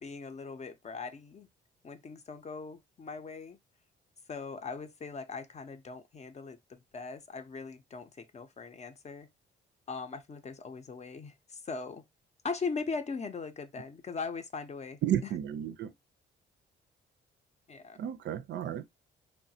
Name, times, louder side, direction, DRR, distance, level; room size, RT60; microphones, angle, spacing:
voice 1, 0.0-1.5 1.8-3.6 4.3-9.3 9.9-12.0 12.4-15.3 17.7-18.0, left 4 dB, 35° left, 0.6 m, -40 dB
voice 2, 15.0-15.9 18.0-18.8, right 10 dB, 65° right, 0.4 m, -32 dB
3.1 x 2.2 x 2.7 m
cardioid pair, 90°, 20 cm